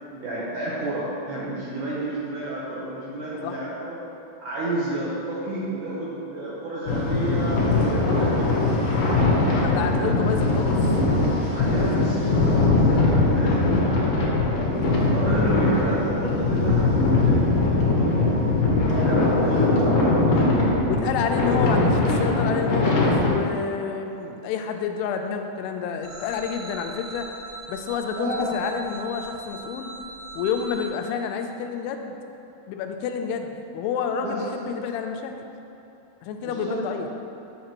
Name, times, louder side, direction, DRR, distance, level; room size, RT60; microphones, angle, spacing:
voice 1, 0.1-4.0 4.4-8.7 9.0-9.5 9.9-10.2 11.5-14.6 15.1-18.5 19.0-20.7 28.2-28.5 34.2-34.3 36.4-36.8, right 2 dB, 75° right, -7 dB, 2.0 m, -31 dB
sound 1, 6.9-23.3, left 2 dB, 65° left, 2.1 m, -21 dB
voice 2, 9.6-10.7 11.7-12.2 20.9-27.3 27.7-29.9 30.4-32.2 32.7-35.3 36.2-37.1, left 6 dB, 90° left, 5 dB, 2.6 m, -29 dB
sound 2, 26.0-30.9, right 3 dB, 55° right, 1.6 m, -40 dB
7.5 x 7.3 x 2.9 m, 2.9 s
omnidirectional pair, 4.6 m